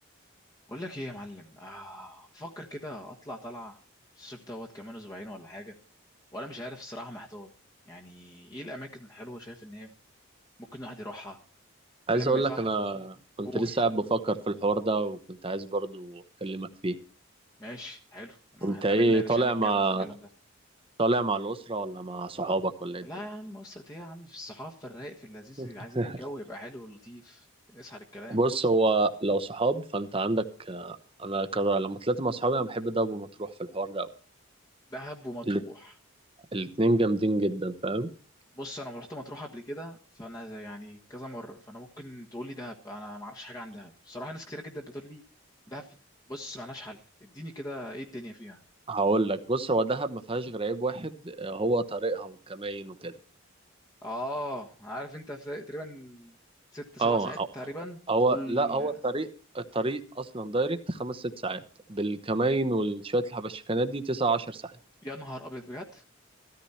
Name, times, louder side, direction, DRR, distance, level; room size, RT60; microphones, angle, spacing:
voice 1, 0.7-3.8 4.1-5.7 6.3-7.5 7.8-9.9 10.7-11.4 12.1-12.7 13.4-13.8 17.6-20.2 23.0-28.4 34.9-35.9 38.5-45.2 45.7-46.0 46.3-48.6 54.0-56.4 56.7-58.0 58.3-59.0 62.4-62.6 65.0-66.0, equal, 15° left, -1 dB, 1.4 m, -41 dB
voice 2, 12.1-17.0 18.6-20.1 21.0-23.1 25.6-25.7 25.9-26.2 28.3-34.1 35.5-35.6 36.5-38.1 48.9-53.1 57.0-57.5 58.1-59.3 59.5-61.6 61.9-64.7, right 2 dB, 25° right, 10 dB, 1.0 m, -28 dB
15.0 x 13.5 x 4.3 m, 0.39 s
head